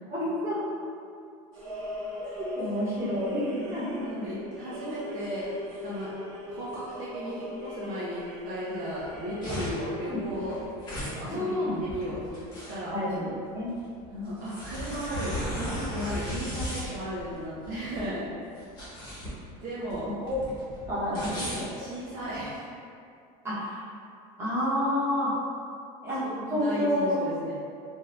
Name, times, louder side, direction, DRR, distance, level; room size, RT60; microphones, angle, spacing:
voice 1, 0.1-0.6 2.2-4.3 10.1-10.4 11.3-11.8 12.9-13.7 16.8-16.9 20.2-20.3 20.9-21.7 23.4-23.8 24.4-25.3 26.0-26.2 26.5-27.2, left 1 dB, 15° right, -12 dB, 1.0 m, -29 dB
sound 1, 1.5-10.7, left 1 dB, 80° right, 0.9 m, -40 dB
voice 2, 4.0-5.5 5.8-6.1 6.5-10.6 11.0-12.4 12.7-12.9 14.1-18.3 19.6-20.1 21.1-22.7 26.2-27.5, equal, 50° right, -9 dB, 0.6 m, -35 dB
sound 2, 9.0-22.5, equal, 25° left, 1.0 m, -37 dB
2.7 x 2.3 x 3.2 m, 2.5 s
cardioid pair, 160°, 18 cm